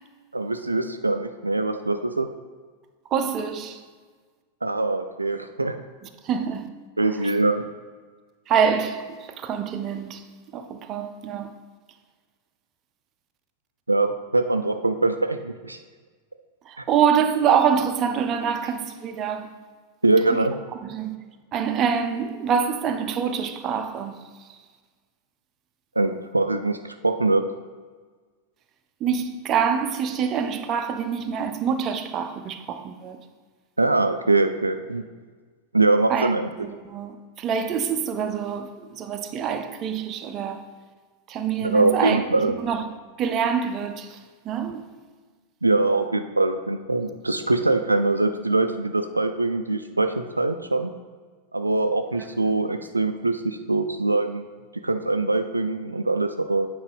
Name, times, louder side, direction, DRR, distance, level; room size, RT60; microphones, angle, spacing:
voice 1, 0.3-2.3 4.6-5.8 7.0-7.6 13.9-15.8 16.8-16.9 20.0-20.6 26.0-27.4 33.8-35.0 35.7-36.5 41.6-42.6 45.6-50.9 51.5-54.4 54.8-56.7, right 2 dB, 80° right, 0.3 m, -23 dB
voice 2, 3.1-3.8 6.2-6.7 7.2-7.3 8.5-10.3 10.5-11.5 16.7-19.5 20.3-20.5 20.8-21.2 21.5-24.6 29.0-33.2 36.1-36.3 36.6-40.6 41.3-44.9, right 7 dB, 30° right, 0.5 m, -26 dB
8.7 x 4.7 x 3.5 m
figure-of-eight pair, 90°, 0 cm